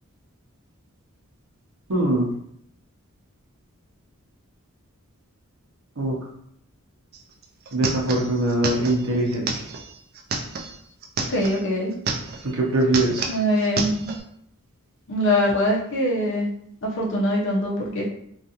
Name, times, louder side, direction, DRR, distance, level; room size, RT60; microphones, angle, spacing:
voice 1, 1.9-2.3 6.0-6.2 7.7-9.6 12.4-13.3, right 1 dB, 70° right, -1 dB, 0.7 m, -22 dB
sound 1, 7.1-7.2 7.4-11.6 11.9-12.5 12.8-14.2, right 4 dB, 45° right, 0.3 m, -30 dB
voice 2, 11.3-11.9 13.3-14.2 15.1-16.5 16.8-18.1, equal, 55° left, -3 dB, 0.6 m, -23 dB
2.4 x 2.4 x 2.7 m, 0.71 s
head